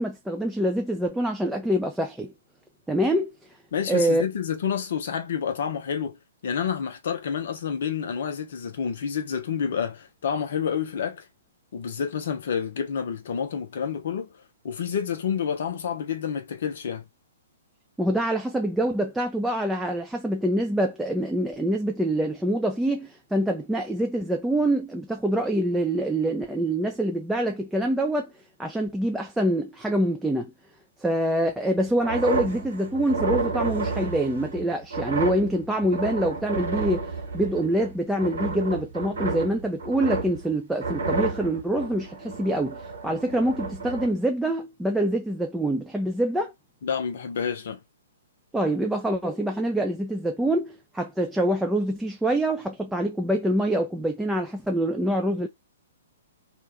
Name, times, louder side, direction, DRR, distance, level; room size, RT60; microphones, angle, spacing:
voice 1, 0.0-2.3 2.9-3.3 3.9-4.2 18.0-28.3 28.6-30.5 31.0-37.1 37.3-42.8 43.0-46.5 48.5-55.5, right 1 dB, 5° right, 0.4 m, -25 dB
voice 2, 3.7-11.2 11.7-14.3 14.6-17.0 46.8-47.8, left 7 dB, 55° left, 0.6 m, -29 dB
sound 1, 31.8-37.9 38.2-40.5 40.8-44.1, right 3 dB, 60° right, 1.0 m, -31 dB
2.5 x 2.2 x 3.3 m
figure-of-eight pair, 115°, 0 cm